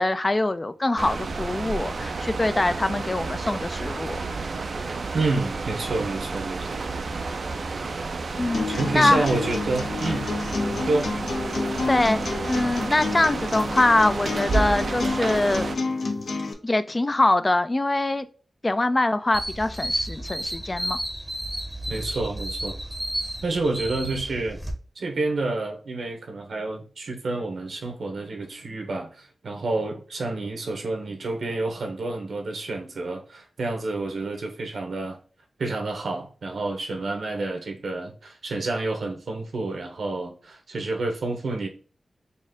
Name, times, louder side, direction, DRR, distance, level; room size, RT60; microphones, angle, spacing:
voice 1, 0.0-4.2 8.4-9.2 11.9-12.2 12.5-15.7 16.6-18.3 18.6-21.0, left 2 dB, 25° left, 0.3 m, -23 dB
sound 1, 1.0-15.8, right 3 dB, 60° right, 0.4 m, -31 dB
voice 2, 5.1-6.8 8.7-10.3 10.7-11.1 21.9-22.8 23.4-24.6 25.0-35.2 35.6-41.7, right 3 dB, 75° right, 1.1 m, -29 dB
sound 2, 8.5-16.5, left 3 dB, 65° left, 0.7 m, -30 dB
sound 3, 19.3-24.7, right 1 dB, 5° right, 0.8 m, -32 dB
4.2 x 2.5 x 3.6 m
wide cardioid pair, 125°, 0 cm